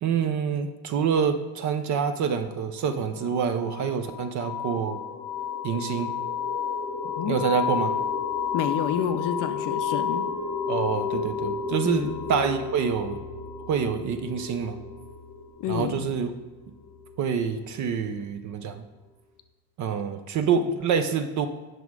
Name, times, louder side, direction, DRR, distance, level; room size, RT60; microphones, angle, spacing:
voice 1, 0.0-5.0 5.6-6.1 7.3-7.9 10.7-13.2 13.7-14.8 15.7-16.3 17.2-18.8 19.8-21.5, right 6 dB, 40° right, 9 dB, 0.4 m, -26 dB
sound 1, 3.2-17.6, left 6 dB, 10° left, 0.9 m, -32 dB
voice 2, 7.0-7.4 8.5-10.3 11.8-12.2 15.6-16.1, left 9 dB, 45° left, 9 dB, 0.5 m, -29 dB
9.1 x 6.2 x 4.7 m, 1.2 s
cardioid pair, 165°, 49 cm